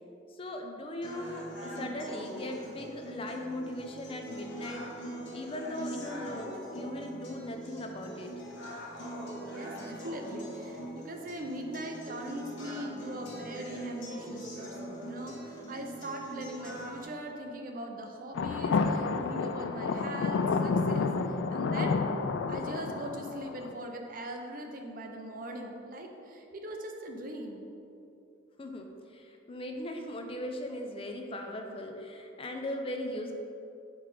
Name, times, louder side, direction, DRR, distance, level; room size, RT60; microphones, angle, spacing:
voice 1, 0.3-5.0 5.3-8.3 28.6-33.3, left 1 dB, 30° left, 3 dB, 0.5 m, -39 dB
sound 1, 1.0-17.0, right 1 dB, 70° left, 1.4 m, -42 dB
voice 2, 9.5-22.0 22.5-27.7, right 1 dB, 45° right, 2 dB, 0.6 m, -41 dB
sound 2, 18.3-23.7, left 4 dB, 90° left, 0.3 m, -30 dB
5.1 x 4.8 x 4.9 m, 2.7 s
head